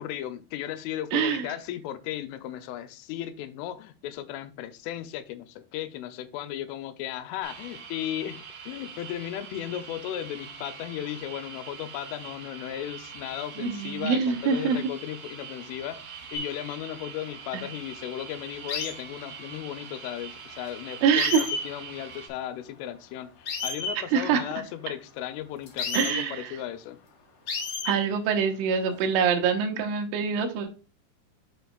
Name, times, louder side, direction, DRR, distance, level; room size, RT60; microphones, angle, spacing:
voice 1, 0.0-27.0, left 12 dB, 85° left, 3.2 m, -36 dB
voice 2, 1.1-1.5 13.6-14.9 17.5-17.7 21.0-21.5 24.1-24.4 25.9-26.6 27.9-30.7, right 6 dB, 85° right, 3.5 m, -25 dB
sound 1, 7.4-22.3, right 6 dB, 50° right, 4.1 m, -44 dB
sound 2, 16.3-16.5 18.7-18.9 20.7-20.8 21.2-21.7 23.5-24.0 25.7-26.2 27.5-28.0 28.9-29.2, left 4 dB, 50° left, 2.6 m, -31 dB
8.0 x 7.5 x 2.3 m
omnidirectional pair, 5.6 m